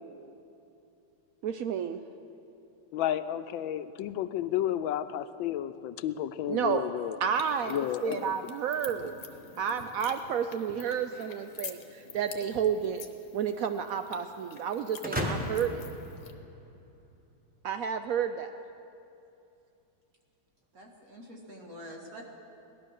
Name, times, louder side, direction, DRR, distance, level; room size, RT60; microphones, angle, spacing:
voice 1, 1.4-2.0 6.5-6.8 7.2-9.1 9.6-13.0 13.3-15.8 17.6-18.5, right 7 dB, 90° right, 9 dB, 0.7 m, -31 dB
voice 2, 2.9-7.2 7.7-8.3, left 11 dB, 85° left, 12 dB, 1.3 m, -32 dB
sound 1, 7.3-16.3, left 6 dB, 60° left, 1.4 m, -48 dB
sound 2, 15.0-17.0, equal, 5° right, 1.1 m, -35 dB
voice 3, 20.7-22.2, equal, 50° right, 0 dB, 2.2 m, -46 dB
18.0 x 12.0 x 6.5 m, 2.7 s
omnidirectional pair, 2.1 m